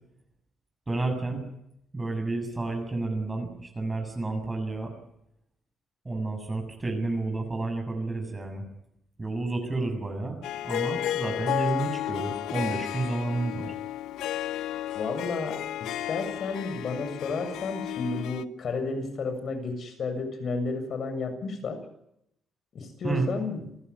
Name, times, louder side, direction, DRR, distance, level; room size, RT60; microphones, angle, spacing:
voice 1, 0.9-1.4 1.9-4.9 6.1-8.6 9.2-10.4 10.6-13.7 23.0-23.3, right 2 dB, 20° right, 4 dB, 7.3 m, -30 dB
Harp, 10.4-18.4, left 12 dB, 85° left, 0.9 m, -33 dB
voice 2, 14.9-21.8 22.7-23.7, left 4 dB, 55° left, 9 dB, 7.2 m, -32 dB
28.5 x 15.5 x 9.9 m, 0.79 s
cardioid pair, 90°, 0 cm